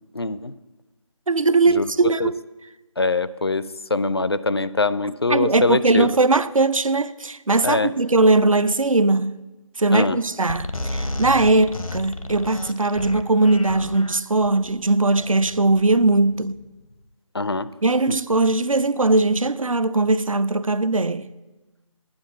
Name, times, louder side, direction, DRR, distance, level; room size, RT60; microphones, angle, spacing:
voice 1, 0.1-0.5 1.7-1.9 2.2-2.3 3.0-6.2 7.6-7.9 9.9-10.2 17.3-17.7 18.1-18.2, left 3 dB, 50° left, 0.4 m, -23 dB
voice 2, 1.3-2.3 5.3-9.3 9.8-16.6 17.8-21.3, right 2 dB, 75° right, 0.6 m, -19 dB
sound 1, 10.5-16.9, left 1 dB, 85° left, 0.8 m, -33 dB
9.8 x 8.6 x 7.1 m
figure-of-eight pair, 165°, 17 cm